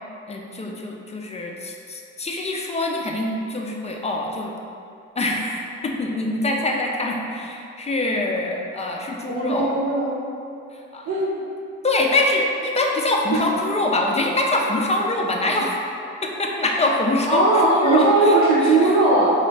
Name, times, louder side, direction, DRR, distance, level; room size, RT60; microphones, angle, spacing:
voice 1, 0.3-4.5 5.2-9.8 10.9-11.1 11.8-15.8 16.2-19.0, left 2 dB, 20° left, 0 dB, 0.4 m, -24 dB
voice 2, 9.3-10.1 11.1-11.4 17.2-19.3, right 2 dB, 60° right, -9 dB, 0.8 m, -18 dB
4.0 x 2.3 x 3.2 m, 2.6 s
cardioid pair, 90°, 30 cm